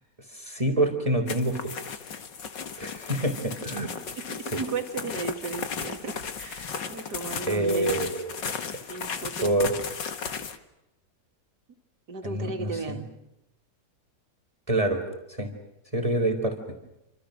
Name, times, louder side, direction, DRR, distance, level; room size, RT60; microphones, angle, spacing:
voice 1, 0.3-1.7 2.8-3.9 4.5-4.6 7.4-8.5 9.4-9.7 12.2-13.0 14.7-15.0 15.4-15.5 15.9-16.6, right 1 dB, 20° right, 6 dB, 3.8 m, -26 dB
sound 1, 1.3-10.6, left 6 dB, 85° left, 2.4 m, -35 dB
voice 2, 4.2-8.0 8.9-9.5 12.1-13.1, right 5 dB, 65° right, 6 dB, 2.8 m, -35 dB
28.5 x 26.5 x 6.6 m, 0.90 s
omnidirectional pair, 1.9 m